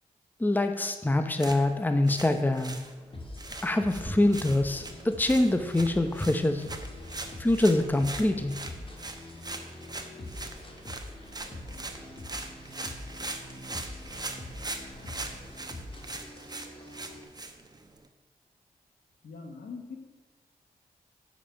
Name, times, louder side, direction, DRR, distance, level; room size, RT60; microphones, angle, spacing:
voice 1, 0.4-2.8 3.6-6.6 7.4-8.5, left 1 dB, 10° left, 8 dB, 0.8 m, -25 dB
sound 1, 1.3-18.1, right 2 dB, 25° right, 1.0 m, -42 dB
sound 2, 3.1-17.2, left 1 dB, 35° left, 1.7 m, -44 dB
voice 2, 19.2-20.0, left 4 dB, 70° left, 4 dB, 1.3 m, -42 dB
8.4 x 5.2 x 5.7 m, 1.3 s
cardioid pair, 45°, 16 cm